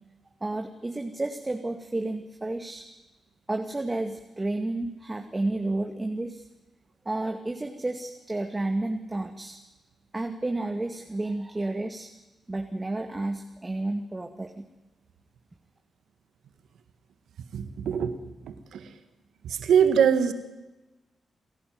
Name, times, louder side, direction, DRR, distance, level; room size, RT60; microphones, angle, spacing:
voice 1, 0.4-2.8 3.5-6.4 7.1-9.6 10.1-12.1 12.5-14.7, right 2 dB, 25° right, 4 dB, 2.1 m, -31 dB
voice 2, 17.5-18.1 18.4-18.9 19.4-20.3, right 8 dB, 80° right, 10 dB, 1.7 m, -23 dB
29.5 x 11.5 x 9.4 m, 1.1 s
supercardioid pair, 45°, 0 cm